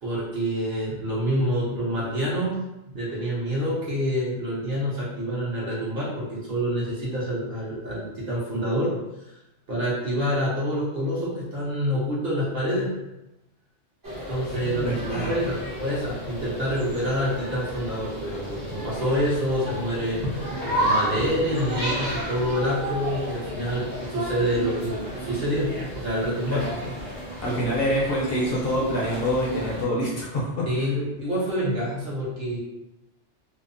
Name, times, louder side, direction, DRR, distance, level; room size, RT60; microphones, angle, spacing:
voice 1, 0.0-2.6 2.9-8.9 9.3-9.4 9.7-12.9 14.3-26.6 30.7-32.6, equal, 50° right, -7 dB, 0.9 m, -27 dB
sound 1, 14.0-29.8, equal, 25° right, 0.4 m, -32 dB
voice 2, 14.6-15.3 26.5-26.9 27.4-30.6, equal, 60° left, -4 dB, 0.8 m, -26 dB
2.7 x 2.0 x 2.5 m, 0.95 s
omnidirectional pair, 1.2 m